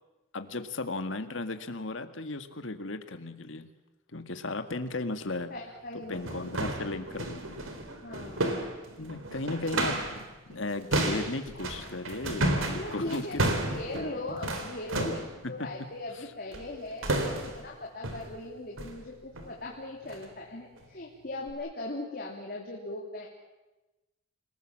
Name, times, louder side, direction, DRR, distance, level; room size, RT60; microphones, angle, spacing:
voice 1, 0.3-3.7 4.1-5.5 6.1-7.6 9.0-13.6 15.4-15.9 16.2-16.3, left 2 dB, 65° left, 8 dB, 1.8 m, -36 dB
sound 1, 5.4-5.5 6.0-10.3 10.5-15.4 16.5-16.8 17.0-17.7 18.0-18.3 18.8-19.0 19.3-19.6 20.0-20.3 20.8-20.9 21.5-21.6, right 1 dB, 85° right, 3.7 m, -32 dB
voice 2, 5.5-6.2 8.0-8.5 12.7-13.3 13.6-15.2 15.5-23.3, left 2 dB, 45° left, -2 dB, 3.2 m, -39 dB
29.0 x 19.5 x 7.5 m, 1.1 s
head